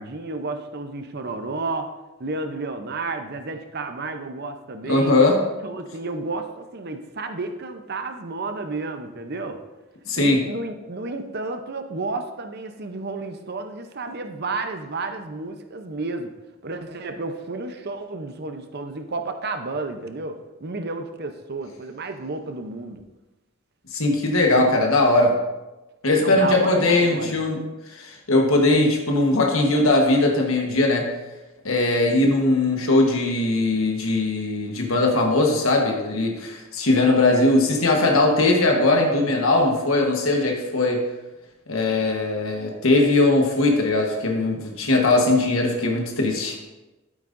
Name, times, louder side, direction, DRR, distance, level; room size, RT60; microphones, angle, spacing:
voice 1, 0.0-1.9 2.2-5.1 5.6-9.6 10.2-16.3 16.6-23.0 26.2-27.4 29.3-29.4, right 3 dB, 50° right, 7 dB, 0.8 m, -31 dB
voice 2, 4.9-5.4 10.1-10.4 23.9-25.3 26.0-27.6 27.9-31.1 31.6-41.0 41.7-46.6, left 2 dB, 80° left, 1 dB, 1.3 m, -20 dB
12.0 x 8.8 x 2.6 m, 1.1 s
head